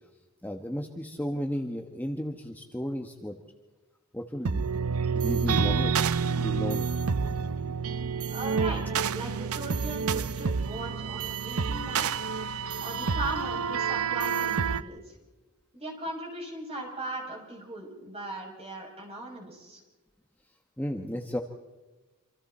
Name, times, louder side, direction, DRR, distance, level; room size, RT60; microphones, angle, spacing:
voice 1, 0.4-3.3 4.1-4.6 5.1-6.0 6.3-6.9 20.8-21.4, equal, 10° left, 3 dB, 1.2 m, -33 dB
sound 1, 4.4-14.8, right 5 dB, 80° right, 0.7 m, -28 dB
voice 2, 8.3-8.8 9.1-12.2 12.8-15.2 15.7-19.8, right 2 dB, 30° right, -1 dB, 7.3 m, -38 dB
28.5 x 26.5 x 4.3 m, 1.2 s
head